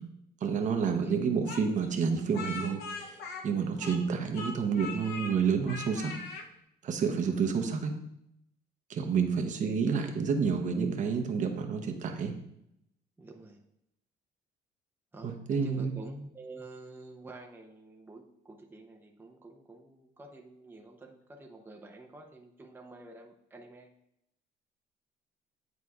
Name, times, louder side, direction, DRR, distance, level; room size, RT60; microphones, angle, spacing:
voice 1, 0.4-3.2 3.4-6.1 6.8-7.9 8.9-12.3 15.2-15.9, right 6 dB, 50° right, 4 dB, 0.9 m, -29 dB
Speech, 1.5-4.1 4.3-5.3 5.7-6.5, left 4 dB, 75° left, 0.8 m, -40 dB
voice 2, 9.6-10.0 13.2-13.6 15.1-23.9, right 2 dB, 10° right, 1 dB, 0.7 m, -48 dB
9.5 x 4.1 x 2.4 m, 0.79 s
cardioid pair, 110°, 17 cm